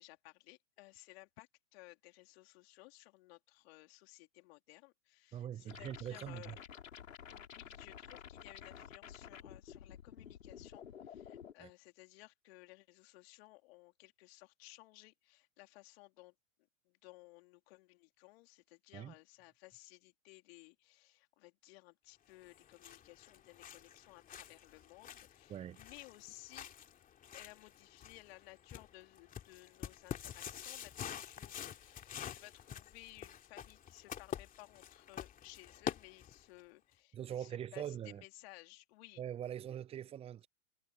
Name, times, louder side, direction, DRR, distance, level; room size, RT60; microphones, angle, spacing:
voice 1, 0.0-6.6 7.3-16.3 16.9-26.7 27.3-39.2, left 22 dB, 50° left, 3.6 m, -58 dB
voice 2, 5.3-6.6 11.6-11.7 18.9-19.1 25.5-25.8 37.1-38.2 39.2-40.5, right 10 dB, 15° right, 0.7 m, -43 dB
sound 1, 5.7-11.5, left 8 dB, 80° left, 5.2 m, -52 dB
sound 2, 22.4-36.6, left 9 dB, 20° left, 2.7 m, -48 dB
hypercardioid pair, 115°, 39 cm